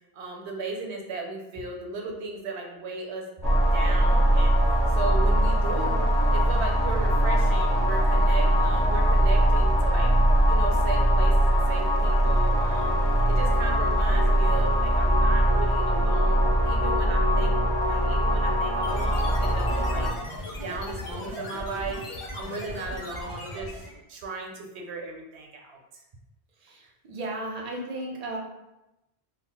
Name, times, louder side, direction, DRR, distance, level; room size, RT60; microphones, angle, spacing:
voice 1, 0.1-3.3 3.6-6.0 6.3-10.1 10.5-13.0 13.3-17.5 17.8-20.1 20.6-22.0 22.3-26.0, right 3 dB, 85° right, 1 dB, 0.9 m, -36 dB
sound 1, 3.4-20.1, equal, ahead, 0.6 m, -21 dB
sound 2, 18.8-24.0, left 1 dB, 45° left, 0.4 m, -37 dB
voice 2, 26.6-28.4, right 1 dB, 50° right, -1 dB, 0.5 m, -35 dB
2.3 x 2.0 x 3.8 m, 0.95 s
omnidirectional pair, 1.1 m